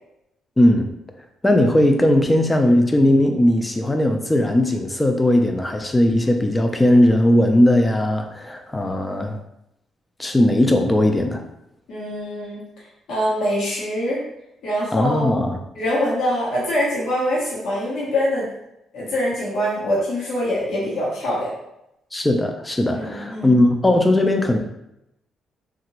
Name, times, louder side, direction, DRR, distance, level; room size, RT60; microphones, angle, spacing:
voice 1, 0.6-0.9 1.4-9.4 10.2-11.4 14.9-15.6 22.1-24.6, left 1 dB, 15° left, 5 dB, 0.4 m, -18 dB
voice 2, 11.9-12.6 13.1-14.2 14.6-15.3 15.8-18.5 18.9-21.5 22.9-23.5, equal, 75° left, -6 dB, 1.0 m, -24 dB
2.7 x 2.5 x 3.0 m, 0.84 s
cardioid pair, 90°, 0 cm